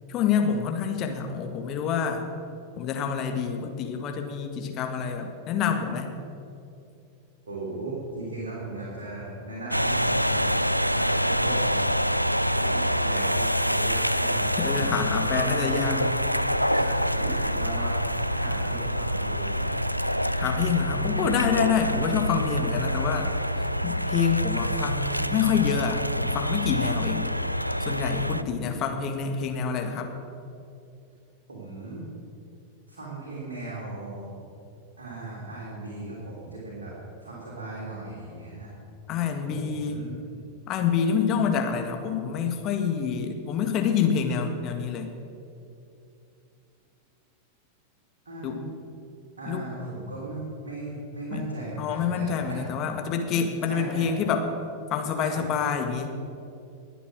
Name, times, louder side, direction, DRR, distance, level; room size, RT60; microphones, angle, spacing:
voice 1, 0.1-2.3 2.8-6.2 14.6-16.0 20.4-27.3 27.8-30.1 39.1-40.0 40.7-45.1 48.4-48.6 49.5-49.7 51.3-51.5 51.8-54.5 54.9-56.1, left 7 dB, 35° left, 5 dB, 1.8 m, -27 dB
voice 2, 7.5-10.5 10.9-11.8 12.1-15.0 15.3-16.1 16.7-18.0 18.3-19.7 22.3-22.6 28.4-28.8 31.5-32.0 32.9-34.4 35.0-36.9 37.2-38.7 39.5-40.4 48.2-48.6 49.4-53.0 53.3-54.1 55.2-55.5, right 2 dB, 70° right, -6 dB, 3.3 m, -37 dB
sound 1, 9.7-28.4, equal, 90° right, 0.4 m, -26 dB
21.5 x 8.2 x 6.2 m, 2.6 s
figure-of-eight pair, 90°, 0 cm